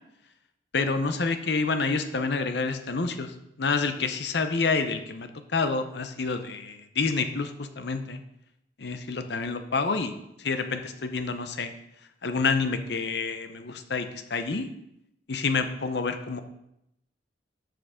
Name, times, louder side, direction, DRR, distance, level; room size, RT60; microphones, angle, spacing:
voice 1, 0.7-8.2 8.8-10.1 10.4-11.7 12.2-14.7 15.3-16.4, left 4 dB, 65° left, 8 dB, 0.7 m, -28 dB
7.3 x 6.2 x 5.0 m, 0.81 s
head